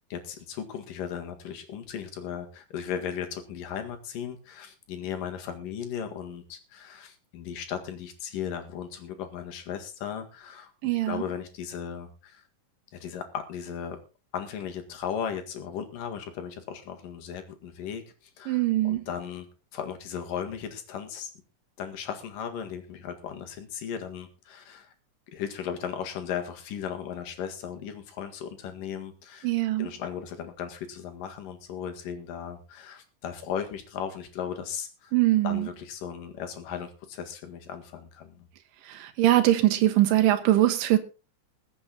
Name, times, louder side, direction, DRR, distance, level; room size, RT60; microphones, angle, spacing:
voice 1, 0.1-12.4 12.9-14.0 14.3-19.5 19.7-21.3 21.8-24.9 25.3-29.5 29.8-35.1 35.4-38.5, left 8 dB, 85° left, 3.5 m, -36 dB
voice 2, 10.8-11.2 18.5-19.1 29.4-29.9 35.1-35.7 38.8-41.0, right 14 dB, 85° right, 2.6 m, -22 dB
21.0 x 7.7 x 4.0 m
omnidirectional pair, 3.8 m